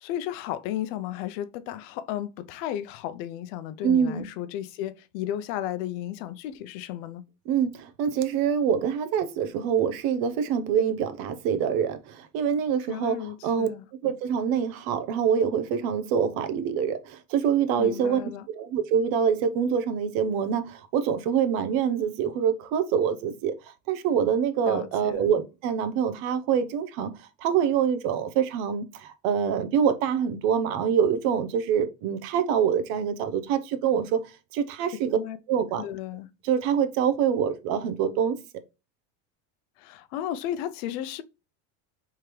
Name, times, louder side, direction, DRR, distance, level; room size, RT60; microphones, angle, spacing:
voice 1, 0.0-7.3 12.9-13.9 17.8-18.5 24.7-25.2 35.1-35.4 35.8-36.3 39.8-41.2, left 12 dB, 70° left, 0.6 m, -34 dB
voice 2, 3.8-4.3 7.5-13.2 13.4-13.7 14.0-18.2 18.5-23.5 23.9-27.1 27.4-34.2 34.5-35.2 35.5-35.9 36.4-38.4, right 8 dB, 65° right, 0.8 m, -25 dB
3.6 x 3.2 x 4.5 m
supercardioid pair, 135°, 39 cm